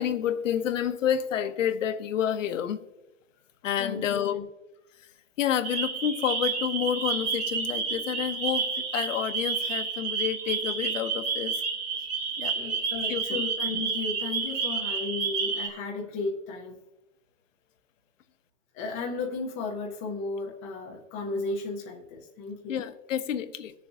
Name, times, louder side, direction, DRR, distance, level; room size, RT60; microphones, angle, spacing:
voice 1, 0.0-2.8 3.6-4.4 5.0-5.1 5.4-11.6 12.4-12.6 13.1-13.4 22.7-23.7, left 9 dB, 85° left, 1.0 m, -29 dB
voice 2, 3.8-4.4 12.5-16.8 18.7-22.8, left 3 dB, 15° left, 0.4 m, -34 dB
sound 1, 5.6-15.7, right 5 dB, 20° right, 0.8 m, -30 dB
19.5 x 6.8 x 2.6 m
hypercardioid pair, 160°, 37 cm